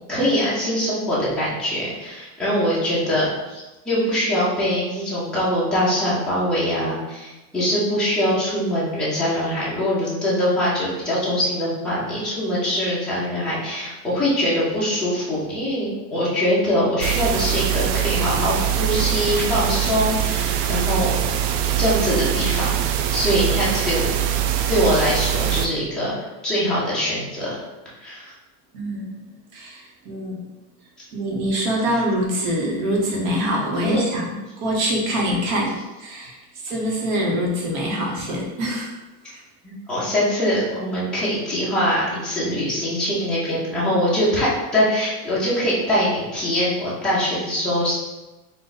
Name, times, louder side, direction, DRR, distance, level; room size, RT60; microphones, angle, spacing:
voice 1, 0.1-21.2 21.8-22.8 23.1-24.2 24.7-26.1 26.4-27.5 28.0-28.3 33.8-34.1 39.9-47.9, equal, ahead, -10 dB, 0.4 m, -23 dB
sound 1, 17.0-25.7, right 10 dB, 90° right, 0.6 m, -23 dB
voice 2, 28.7-29.3 29.5-30.4 31.1-36.3 36.6-38.9 39.3-39.4, equal, 65° right, -2 dB, 1.2 m, -24 dB
4.0 x 2.5 x 3.9 m, 1.1 s
supercardioid pair, 180°, 45 cm